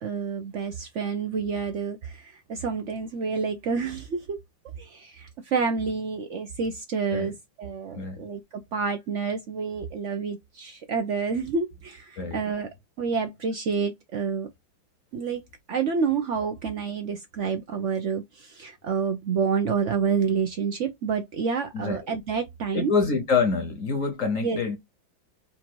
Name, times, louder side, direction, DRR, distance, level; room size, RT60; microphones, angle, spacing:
voice 1, 0.0-4.4 4.8-12.7 13.0-14.5 15.1-15.4 15.7-22.9 24.4-24.6, right 5 dB, 85° right, 0.6 m, -28 dB
voice 2, 21.7-22.1 22.7-24.8, left 4 dB, 55° left, 1.0 m, -26 dB
4.3 x 2.6 x 4.4 m
omnidirectional pair, 2.2 m